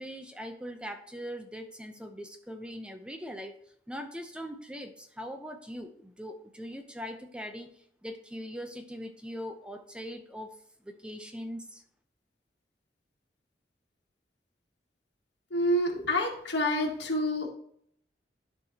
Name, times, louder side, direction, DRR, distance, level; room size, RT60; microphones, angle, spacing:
voice 1, 0.0-3.6 3.9-7.7 8.0-10.6 10.8-11.8, equal, 5° right, 6 dB, 0.6 m, -41 dB
voice 2, 15.5-17.5, left 1 dB, 85° left, 0 dB, 1.7 m, -28 dB
12.5 x 4.5 x 2.9 m, 0.65 s
head